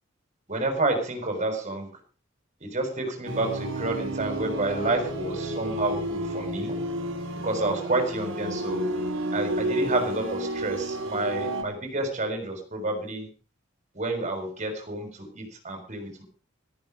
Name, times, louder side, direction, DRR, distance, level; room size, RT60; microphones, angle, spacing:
voice 1, 0.5-1.9 2.6-6.8 7.4-8.9 9.3-13.3 13.9-16.2, right 2 dB, 35° right, 5 dB, 5.9 m, -29 dB
sound 1, 3.3-11.6, right 1 dB, 75° right, 3.5 m, -31 dB
14.0 x 14.0 x 5.2 m, 0.37 s
head